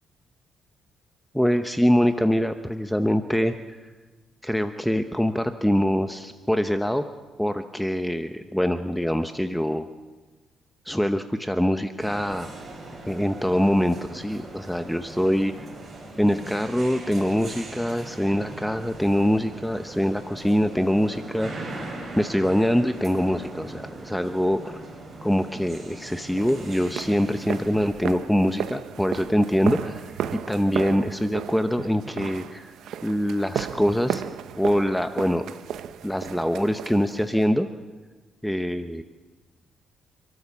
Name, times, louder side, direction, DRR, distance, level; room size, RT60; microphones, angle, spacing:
voice 1, 1.3-3.5 4.4-7.0 7.4-9.9 10.8-12.5 13.1-15.5 16.2-21.6 22.2-24.8 25.2-32.7 33.0-34.2 34.6-35.5 36.0-37.7 38.4-39.0, equal, 5° left, 8 dB, 0.9 m, -24 dB
sound 1, 12.0-27.9, right 2 dB, 40° right, 7.2 m, -40 dB
sound 2, 26.4-37.5, right 9 dB, 75° right, 0.9 m, -34 dB
29.0 x 13.0 x 7.3 m, 1.3 s
cardioid pair, 90°, 0 cm